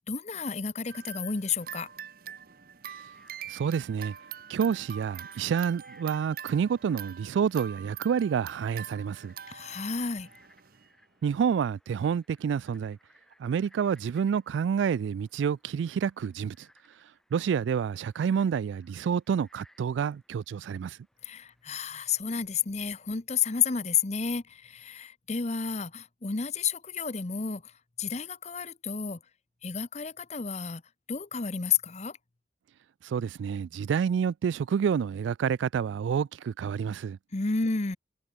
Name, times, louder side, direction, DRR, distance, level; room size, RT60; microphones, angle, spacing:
voice 1, 0.1-1.9 9.5-10.3 21.2-27.7 28.0-29.2 29.6-30.8 31.1-32.2 37.3-38.0, left 6 dB, 35° left, 0.9 m, -31 dB
sound 1, 0.9-10.9, right 9 dB, 50° right, 0.8 m, -45 dB
Frog, 3.0-21.7, equal, 5° left, 5.1 m, -64 dB
voice 2, 3.5-4.1 4.5-9.3 11.2-13.0 13.4-16.7 17.3-21.0 33.0-37.2, right 7 dB, 80° right, 0.3 m, -28 dB
head